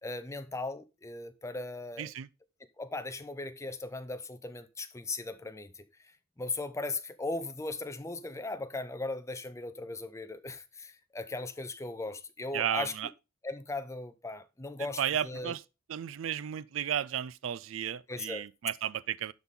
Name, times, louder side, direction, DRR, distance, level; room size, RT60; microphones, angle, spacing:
voice 1, 0.0-2.1 2.8-5.8 6.4-12.9 13.4-15.5 18.1-18.4, left 2 dB, 15° left, 0.6 m, -38 dB
voice 2, 2.0-2.3 12.5-13.1 15.0-15.6 15.9-19.3, right 9 dB, 85° right, 0.4 m, -33 dB
11.5 x 4.1 x 3.7 m
head